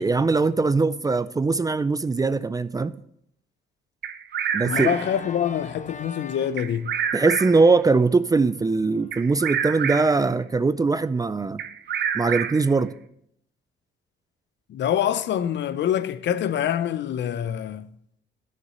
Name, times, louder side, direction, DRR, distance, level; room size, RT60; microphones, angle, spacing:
voice 1, 0.0-2.9 4.5-5.0 7.1-11.6 12.1-12.9, right 3 dB, 20° right, 0.4 m, -21 dB
Bird vocalization bird call bird song, 4.0-5.2 6.6-7.8 9.1-10.3 11.6-12.8, right 8 dB, 60° right, 0.8 m, -28 dB
voice 2, 4.6-7.0 14.7-17.9, left 9 dB, 65° left, 0.6 m, -25 dB
Organ, 4.6-9.5, left 4 dB, 40° left, 1.0 m, -42 dB
10.0 x 6.7 x 5.5 m
cardioid pair, 90°, 20 cm